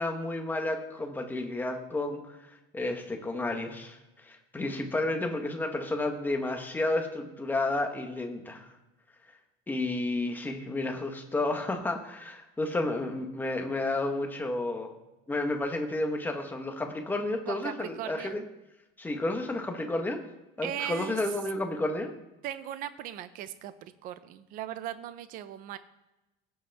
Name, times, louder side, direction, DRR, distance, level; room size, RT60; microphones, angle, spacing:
voice 1, 0.0-2.4 2.7-4.0 4.2-8.7 9.7-14.9 15.3-18.4 19.0-20.2 20.6-22.1, left 2 dB, 10° left, 3 dB, 1.2 m, -31 dB
voice 2, 17.5-18.4 20.6-21.4 22.4-25.8, right 11 dB, 40° right, 12 dB, 0.6 m, -38 dB
17.0 x 7.9 x 3.5 m, 1.0 s
cardioid pair, 170°, 21 cm